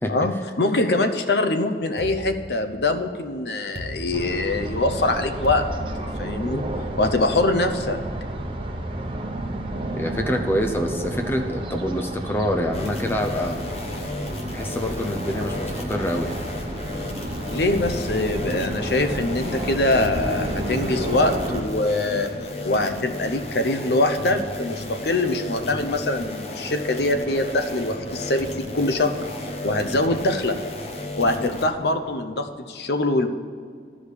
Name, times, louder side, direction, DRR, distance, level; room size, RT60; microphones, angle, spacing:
voice 1, 0.1-5.6 6.2-6.7 7.0-8.0 17.5-22.3 22.6-29.2 29.6-30.6 31.2-33.3, left 2 dB, 70° left, 7 dB, 0.8 m, -23 dB
sound 1, 2.0-3.1 3.7-4.8 5.4-6.6, left 1 dB, 70° right, 1.0 m, -37 dB
sound 2, 4.1-21.6, right 1 dB, 30° right, 1.0 m, -31 dB
voice 2, 9.9-13.6 14.5-16.3, equal, 15° left, 4 dB, 0.6 m, -26 dB
sound 3, 12.7-31.7, left 1 dB, 35° left, 1.0 m, -33 dB
13.0 x 5.0 x 8.2 m, 2.1 s
head